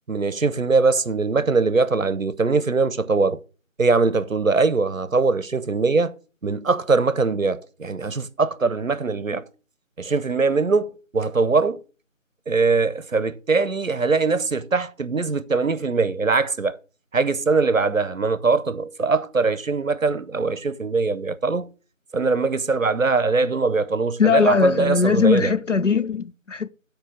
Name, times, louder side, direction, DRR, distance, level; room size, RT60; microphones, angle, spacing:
voice 1, 0.1-3.4 3.8-6.1 6.4-9.4 10.0-11.8 12.5-16.8 17.1-21.7 22.1-25.5, right 4 dB, 75° right, 0.8 m, -22 dB
voice 2, 24.2-26.7, left 5 dB, 65° left, 0.6 m, -20 dB
7.2 x 4.5 x 6.3 m
figure-of-eight pair, 180°, 40 cm